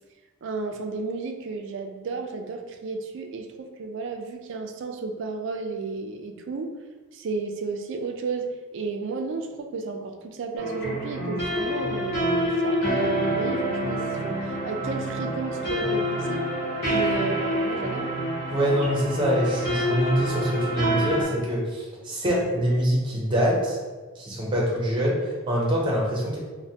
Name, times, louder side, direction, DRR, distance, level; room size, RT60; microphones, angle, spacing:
voice 1, 0.4-6.8 7.1-16.5 16.9-18.2, right 4 dB, 60° right, 4 dB, 0.3 m, -33 dB
sound 1, 10.6-21.2, equal, 50° left, 1.3 m, -27 dB
voice 2, 18.5-23.8 24.2-26.4, equal, 25° right, -4 dB, 0.7 m, -24 dB
3.1 x 2.1 x 2.7 m, 1.3 s
head